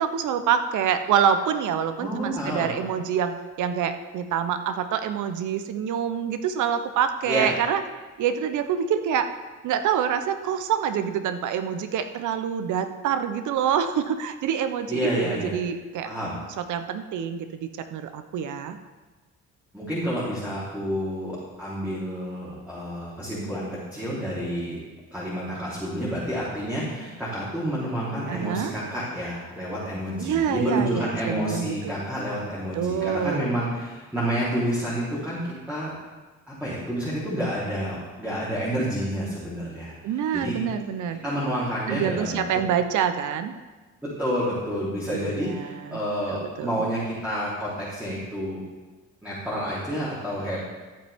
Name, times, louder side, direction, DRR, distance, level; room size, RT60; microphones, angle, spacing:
voice 1, 0.0-7.8 8.2-9.3 9.6-16.1 16.6-18.8 28.3-28.7 30.2-32.0 32.7-33.5 40.0-41.2 41.9-43.5 45.1-46.0 46.3-46.8, right 8 dB, 75° right, 9 dB, 0.8 m, -26 dB
voice 2, 2.0-2.7 7.2-7.5 14.9-15.6 16.0-16.3 19.7-24.8 25.1-35.4 35.7-35.9 36.5-40.6 41.2-42.4 44.2-48.6 49.2-50.7, equal, 5° right, -10 dB, 3.6 m, -29 dB
13.5 x 8.8 x 3.6 m, 1.3 s
cardioid pair, 90°, 30 cm